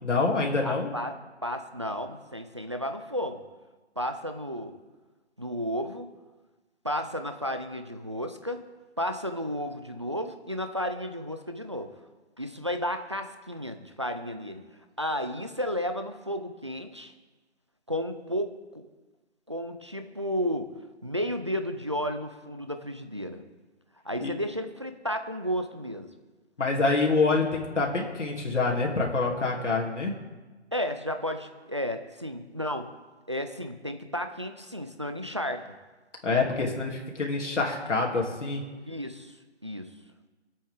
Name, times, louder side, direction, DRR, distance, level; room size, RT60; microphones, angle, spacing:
voice 1, 0.0-0.9 24.2-24.3 26.6-30.1 36.2-38.6, left 3 dB, 85° left, -1 dB, 3.0 m, -26 dB
voice 2, 0.6-3.4 4.0-4.8 5.4-6.1 6.8-8.6 9.0-11.9 12.4-17.1 17.9-18.8 19.5-20.7 21.0-23.4 24.0-26.1 30.7-32.9 33.3-35.7 38.8-39.4 39.6-40.0, equal, 25° right, 7 dB, 0.4 m, -33 dB
21.5 x 8.5 x 3.7 m, 1.3 s
hypercardioid pair, 165°, 35 cm